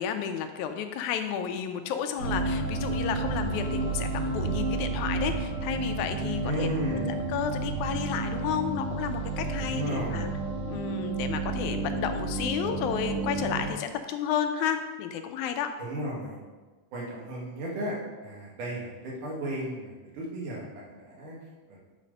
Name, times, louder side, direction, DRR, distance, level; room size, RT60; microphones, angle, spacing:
voice 1, 0.0-6.7 7.3-10.3 10.7-15.7, left 8 dB, 80° left, 7 dB, 1.9 m, -32 dB
sound 1, 2.2-13.7, right 3 dB, 65° right, 3.1 m, -31 dB
voice 2, 6.4-7.3 9.6-10.3 15.8-16.4 16.9-21.4 21.7-21.8, equal, 90° right, -4 dB, 3.3 m, -34 dB
8.7 x 4.1 x 5.2 m, 1.3 s
omnidirectional pair, 3.5 m